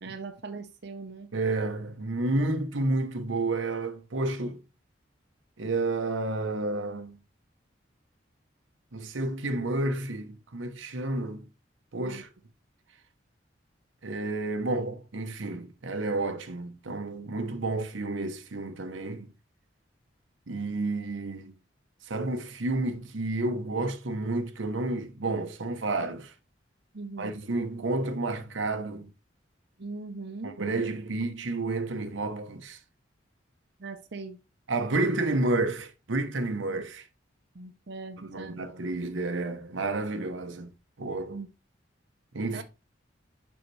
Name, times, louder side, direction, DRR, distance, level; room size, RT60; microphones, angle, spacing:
voice 1, 0.0-1.3 12.0-12.2 26.9-27.3 29.8-30.5 33.8-34.4 37.5-38.5 41.3-41.5 42.5-42.6, right 3 dB, 60° right, 0.7 m, -40 dB
voice 2, 1.3-4.6 5.6-7.2 8.9-11.5 11.9-12.3 14.0-19.3 20.5-21.5 22.1-26.3 27.2-29.1 30.4-32.8 34.7-37.1 38.2-40.7 41.0-41.4 42.3-42.6, right 2 dB, 85° right, 0.9 m, -30 dB
7.1 x 5.6 x 3.2 m
head